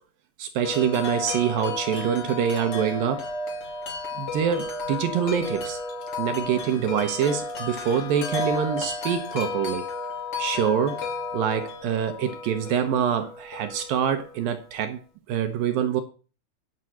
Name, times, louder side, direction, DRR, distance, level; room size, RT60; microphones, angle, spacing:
voice 1, 0.4-3.3 4.2-5.8 6.2-9.8 10.4-11.0 11.3-15.0 15.3-16.0, right 8 dB, 75° right, 2.3 m, -25 dB
Wind chime, 0.6-14.6, left 3 dB, 40° left, 2.9 m, -33 dB
9.6 x 5.6 x 7.6 m
omnidirectional pair, 4.7 m